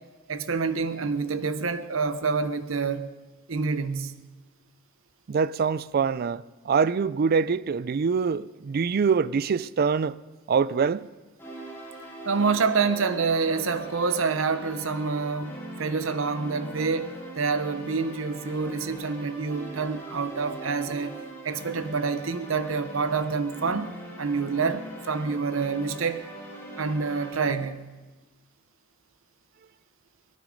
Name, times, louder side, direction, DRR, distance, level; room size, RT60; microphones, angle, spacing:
voice 1, 0.3-3.1 3.5-4.2 12.2-23.9 24.2-26.3 26.8-27.8, right 4 dB, 75° right, 0.8 m, -27 dB
voice 2, 5.3-10.2 10.5-11.1, right 5 dB, 50° right, 0.4 m, -24 dB
sound 1, 11.4-27.5, right 1 dB, 10° left, 3.2 m, -41 dB
18.0 x 13.0 x 5.1 m
head